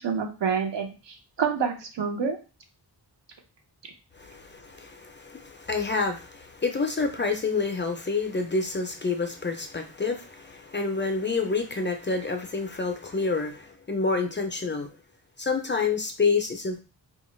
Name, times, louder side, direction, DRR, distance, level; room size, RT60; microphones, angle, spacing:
voice 1, 0.0-2.4 3.8-3.9, right 6 dB, 80° right, 4 dB, 0.7 m, -28 dB
voice 2, 4.2-14.9 15.4-16.8, left 4 dB, 30° left, 4 dB, 0.4 m, -28 dB
2.8 x 2.3 x 3.0 m, 0.33 s
wide cardioid pair, 110°, 42 cm